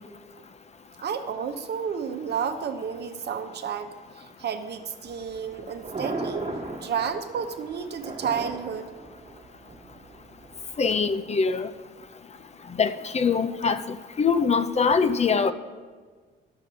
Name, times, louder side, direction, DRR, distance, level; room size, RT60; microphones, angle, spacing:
voice 1, 1.0-6.5 6.8-8.9, right 7 dB, 55° right, 7 dB, 0.9 m, -31 dB
Thunder, 5.1-11.1, right 3 dB, 35° right, 1.6 m, -38 dB
voice 2, 10.8-11.7 12.8-15.5, left 5 dB, 35° left, 11 dB, 0.5 m, -23 dB
12.5 x 5.3 x 6.3 m, 1.5 s
cardioid pair, 90°, 20 cm